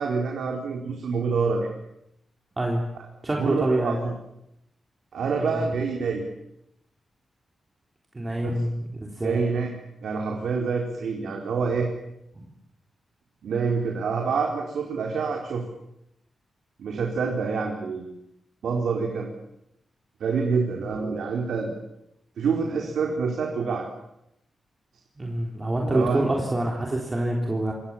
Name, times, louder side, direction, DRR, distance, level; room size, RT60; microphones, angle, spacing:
voice 1, 0.0-1.7 3.3-4.1 5.1-6.3 8.5-8.6 9.2-9.7 10.0-11.9 13.4-15.6 16.8-18.2 18.6-19.3 20.2-21.7 22.4-23.9 25.8-26.2, right 5 dB, 85° right, 1 dB, 4.4 m, -27 dB
voice 2, 3.2-4.0 5.4-5.6 8.1-9.4 12.4-12.5 25.2-27.7, right 1 dB, 20° right, -1 dB, 3.5 m, -26 dB
29.0 x 25.0 x 7.4 m, 0.82 s
wide cardioid pair, 180°, 0 cm